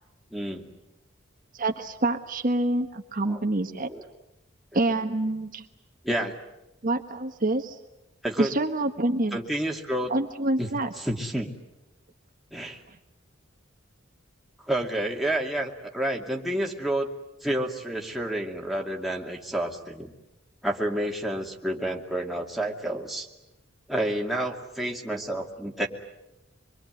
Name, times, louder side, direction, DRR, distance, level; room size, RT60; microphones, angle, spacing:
voice 1, 0.3-0.7 3.3-3.4 3.9-4.0 6.0-6.4 8.2-8.5 9.3-10.1 10.6-10.7 11.0-11.5 12.5-12.8 14.6-17.1 17.4-20.1 20.6-23.3 23.9-25.9, right 1 dB, ahead, -1 dB, 2.5 m, -29 dB
voice 2, 1.6-3.9 4.7-5.6 6.8-7.8 8.4-9.4 10.1-10.9, right 2 dB, 45° right, 5 dB, 1.3 m, -26 dB
26.0 x 23.0 x 9.4 m, 0.93 s
head